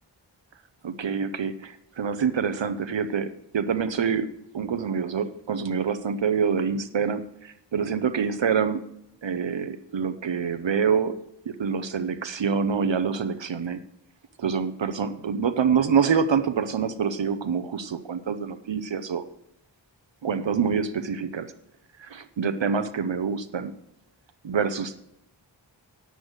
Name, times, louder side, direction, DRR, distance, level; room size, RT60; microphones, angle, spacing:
voice 1, 0.8-4.3 4.5-8.8 9.2-11.2 11.5-13.8 14.4-19.2 20.2-21.5 22.0-23.7 24.4-25.0, right 6 dB, 70° right, 10 dB, 0.7 m, -26 dB
9.1 x 8.0 x 6.3 m, 0.80 s
wide cardioid pair, 45°, 46 cm